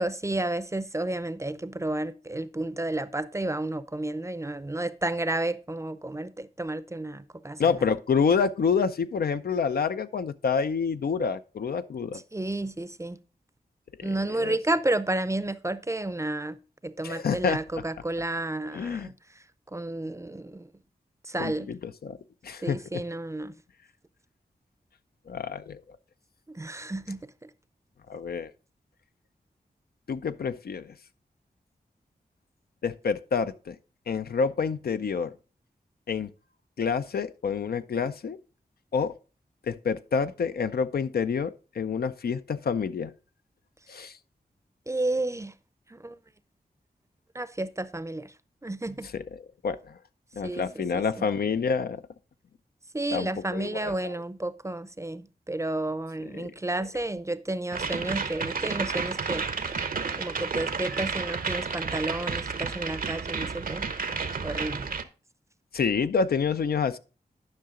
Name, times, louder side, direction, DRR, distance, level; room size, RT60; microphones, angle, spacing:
voice 1, 0.0-7.6 12.3-13.2 14.0-16.6 16.8-19.1 19.7-20.7 21.2-21.7 22.6-23.5 26.5-27.5 44.9-45.5 45.9-46.2 47.3-48.3 48.6-49.1 50.4-51.3 52.9-59.5 60.2-63.9 64.4-64.9, right 2 dB, 20° right, 0.6 m, -31 dB
voice 2, 7.6-12.2 14.0-14.1 14.4-14.6 17.0-17.6 18.7-19.1 21.4-22.2 22.4-23.0 25.3-25.8 28.1-28.5 30.1-30.9 32.8-33.8 34.1-35.3 36.1-36.3 36.8-38.4 38.9-39.1 39.7-43.1 43.9-44.2 49.0-49.2 49.6-50.0 50.3-52.0 53.1-54.1 56.4-56.5 65.7-67.0, left 6 dB, 70° left, 0.5 m, -28 dB
sound 1, 57.7-65.0, right 5 dB, 60° right, 0.8 m, -31 dB
10.5 x 5.7 x 3.7 m
cardioid pair, 55°, 17 cm